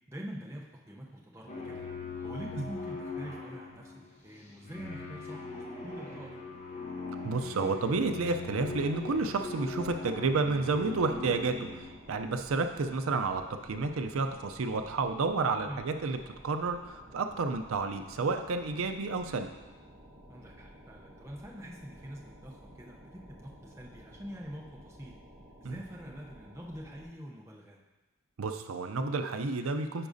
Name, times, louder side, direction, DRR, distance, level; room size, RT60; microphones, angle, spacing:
voice 1, 0.1-1.9 2.2-6.4 15.7-15.8 20.3-25.2 25.6-27.8, equal, 15° right, -3 dB, 0.6 m, -45 dB
sound 1, 1.5-12.0, left 3 dB, 30° left, 0.7 m, -41 dB
voice 2, 7.2-11.7 12.1-16.2 16.4-19.5 25.6-25.8 28.4-30.1, right 3 dB, 75° right, 7 dB, 0.5 m, -30 dB
sound 2, 8.5-27.1, equal, 45° right, 1.9 m, -54 dB
9.8 x 4.9 x 2.6 m, 1.1 s
head